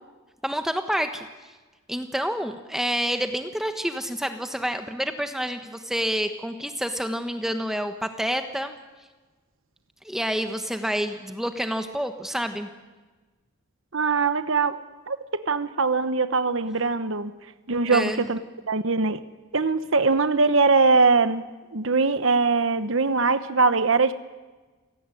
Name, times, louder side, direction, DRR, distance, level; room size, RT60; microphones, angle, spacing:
voice 1, 0.4-1.3 1.9-8.7 10.0-12.7 17.9-18.3, equal, ahead, 7 dB, 1.2 m, -28 dB
voice 2, 13.9-14.8 15.1-17.3 17.7-18.4 18.7-19.2 19.5-21.4 21.7-24.1, right 4 dB, 70° right, 11 dB, 1.0 m, -22 dB
28.5 x 17.5 x 9.9 m, 1.3 s
head